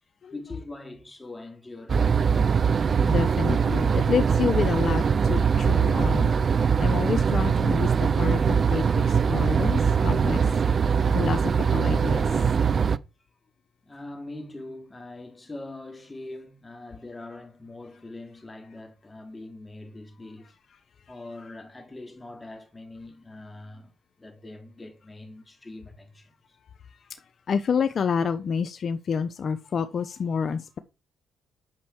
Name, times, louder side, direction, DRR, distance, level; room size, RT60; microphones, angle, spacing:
voice 1, 0.3-2.1 13.8-20.5 21.1-26.6, left 2 dB, 20° left, 3.2 m, -42 dB
sound 1, 1.9-13.0, right 6 dB, 45° right, 0.5 m, -22 dB
voice 2, 3.1-6.3 6.8-10.4 11.1-12.2 27.5-30.8, left 6 dB, 50° left, 0.9 m, -28 dB
9.4 x 5.7 x 7.2 m
cardioid pair, 90°, 0 cm